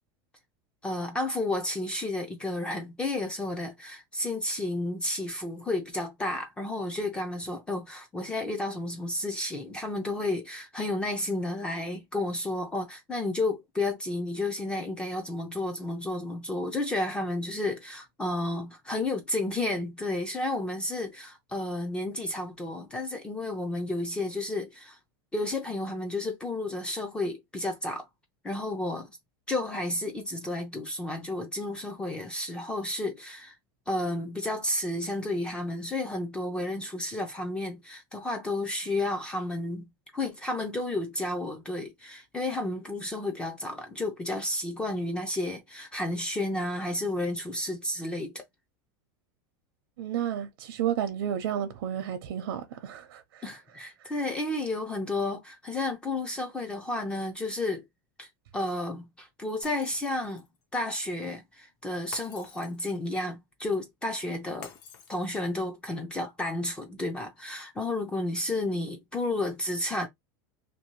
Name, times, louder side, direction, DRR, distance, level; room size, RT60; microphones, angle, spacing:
voice 1, 0.8-25.0 25.3-28.1 28.4-29.2 29.5-33.6 33.9-39.8 40.1-48.4 53.4-57.8 58.2-60.4 60.7-64.7 65.1-70.1, left 2 dB, 10° left, 0.4 m, -32 dB
voice 2, 50.0-53.4 54.0-54.1, right 9 dB, 75° right, 0.6 m, -32 dB
Shatter, 59.6-60.6 62.1-63.1 64.6-65.6, left 7 dB, 55° left, 0.8 m, -48 dB
2.6 x 2.6 x 2.9 m
supercardioid pair, 175°, 12 cm